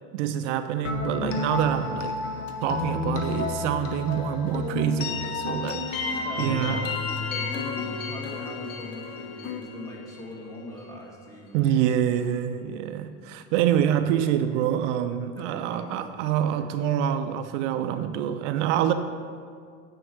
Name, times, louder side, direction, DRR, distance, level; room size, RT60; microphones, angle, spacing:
voice 1, 0.1-2.1 2.6-7.0 11.5-18.9, right 10 dB, 70° right, 9 dB, 0.5 m, -26 dB
sound 1, 0.8-10.6, left 3 dB, 85° left, 1.0 m, -31 dB
sound 2, 2.2-9.6, left 8 dB, 30° left, 0.5 m, -43 dB
voice 2, 6.2-6.7 7.3-11.9 15.4-16.2 16.5-16.7, left 1 dB, 10° left, -3 dB, 1.9 m, -41 dB
8.8 x 4.6 x 4.6 m, 2.1 s
hypercardioid pair, 95°, 37 cm